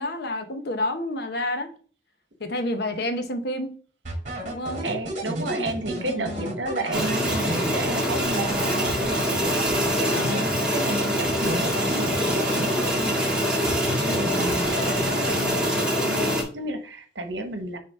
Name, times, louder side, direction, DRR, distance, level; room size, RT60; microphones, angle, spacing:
voice 1, 0.0-1.7 2.4-3.8 4.4-4.8 5.4-5.5 6.1-6.6 10.1-10.6 14.1-14.6, left 1 dB, 60° left, 1.0 m, -30 dB
sound 1, 4.1-10.9 11.2-13.3 13.7-15.7, right 1 dB, 40° right, 2.4 m, -33 dB
voice 2, 4.8-17.8, right 1 dB, 70° right, 1.2 m, -33 dB
sound 2, 6.9-16.4, equal, 5° right, 1.7 m, -24 dB
6.6 x 3.0 x 5.4 m
head